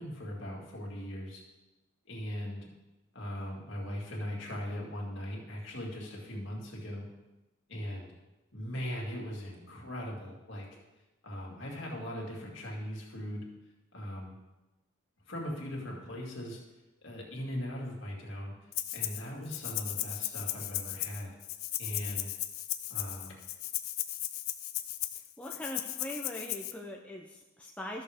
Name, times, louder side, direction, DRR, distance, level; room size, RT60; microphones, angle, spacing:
voice 1, 0.0-1.4 2.1-2.7 3.1-7.1 7.7-8.1 8.5-10.7 11.2-13.5 13.9-14.3 15.3-16.6 17.0-18.5 18.9-21.3 21.8-22.3 22.9-23.3, equal, 60° left, -2 dB, 2.3 m, -39 dB
Rattle (instrument), 18.7-19.2 19.5-26.7, left 14 dB, 85° left, 0.5 m, -36 dB
voice 2, 25.4-28.0, left 1 dB, 5° left, 0 dB, 0.6 m, -41 dB
13.5 x 6.6 x 3.5 m, 1.1 s
head